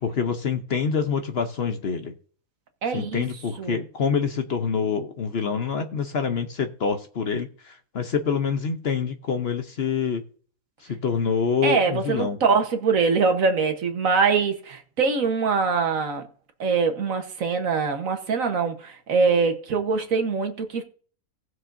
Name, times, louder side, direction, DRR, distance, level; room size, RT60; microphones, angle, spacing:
voice 1, 0.0-2.1 2.9-10.2 10.8-12.4, left 6 dB, 50° left, 0.9 m, -26 dB
voice 2, 2.8-3.2 3.6-3.8 11.6-16.3 16.6-20.8, right 5 dB, 65° right, 1.6 m, -23 dB
18.5 x 6.2 x 2.6 m
omnidirectional pair, 1.5 m